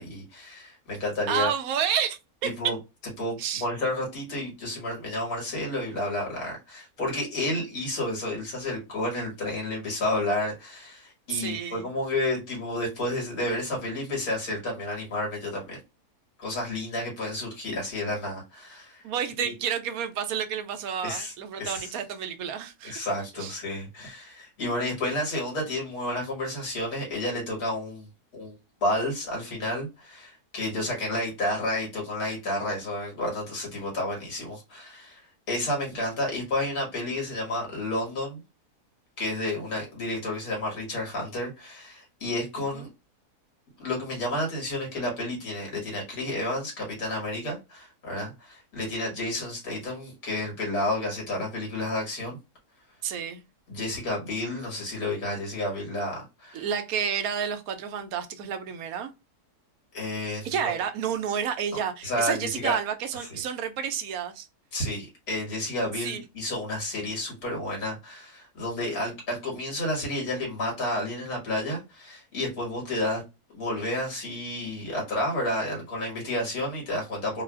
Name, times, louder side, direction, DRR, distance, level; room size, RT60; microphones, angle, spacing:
voice 1, 0.0-1.5 2.4-2.7 3.2-15.8 16.4-19.0 19.4-19.5 21.0-21.3 21.6-21.9 22.8-28.1 28.3-28.5 28.8-38.4 39.2-42.9 43.8-52.4 53.7-56.7 59.9-60.7 62.0-62.8 63.3-63.4 64.7-73.2 73.5-77.4, left 1 dB, 70° left, 2.3 m, -31 dB
voice 2, 1.3-2.5 3.4-3.7 11.3-11.9 19.0-23.0 23.4-23.5 42.6-42.9 53.0-53.4 56.5-59.1 60.4-64.5 66.0-66.2, right 8 dB, 75° right, 1.0 m, -30 dB
3.8 x 2.4 x 2.4 m
omnidirectional pair, 1.6 m